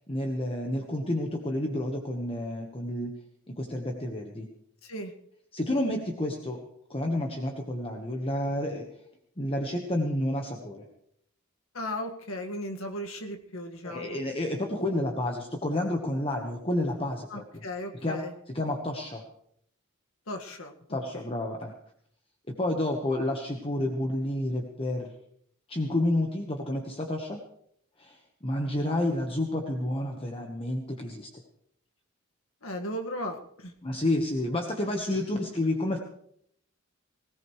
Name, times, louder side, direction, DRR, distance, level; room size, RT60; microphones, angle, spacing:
voice 1, 0.1-3.2 3.5-4.5 5.5-6.6 6.9-8.9 9.4-10.9 13.8-17.6 18.0-18.2 18.5-19.2 20.9-21.7 22.6-25.1 25.7-27.4 28.0-31.3 33.8-36.0, left 1 dB, 25° left, 2 dB, 1.3 m, -30 dB
voice 2, 4.8-5.1 11.7-14.2 17.3-18.3 20.3-21.2 32.6-33.7, left 1 dB, 65° left, 4 dB, 1.9 m, -36 dB
20.5 x 17.5 x 3.3 m, 0.68 s
head